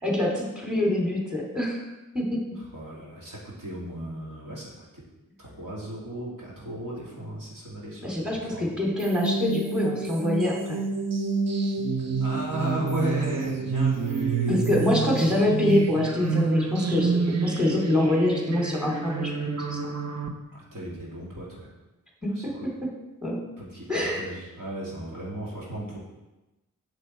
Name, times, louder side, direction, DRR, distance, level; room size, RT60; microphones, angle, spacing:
voice 1, 0.0-1.8 2.1-2.4 8.0-10.8 14.5-19.3 19.7-19.8 22.2-22.9 23.2-23.4 23.9-24.2, left 1 dB, ahead, -1 dB, 2.5 m, -25 dB
voice 2, 2.6-5.0 5.4-8.2 8.5-8.7 12.2-14.7 20.5-21.7 22.4-22.5 23.6-26.0, right 1 dB, 75° right, -5 dB, 2.6 m, -35 dB
sound 1, 9.0-20.3, right 4 dB, 50° right, 0.8 m, -28 dB
7.5 x 6.6 x 4.4 m, 1.0 s
cardioid pair, 45°, 33 cm